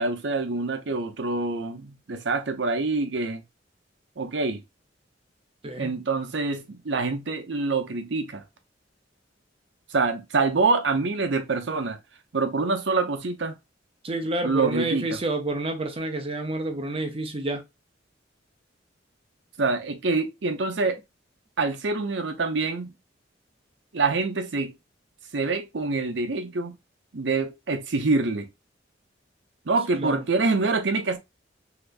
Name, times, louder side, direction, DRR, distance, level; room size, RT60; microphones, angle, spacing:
voice 1, 0.0-3.4 4.2-4.6 5.8-8.4 9.9-12.0 12.3-13.5 14.4-15.1 19.6-21.0 21.6-22.9 23.9-24.7 25.3-26.8 27.1-28.5 29.7-31.2, right 3 dB, 70° right, 0.7 m, -26 dB
voice 2, 5.6-6.0 14.0-17.6 30.0-30.2, right 2 dB, 30° right, 0.6 m, -29 dB
3.4 x 2.8 x 2.5 m
head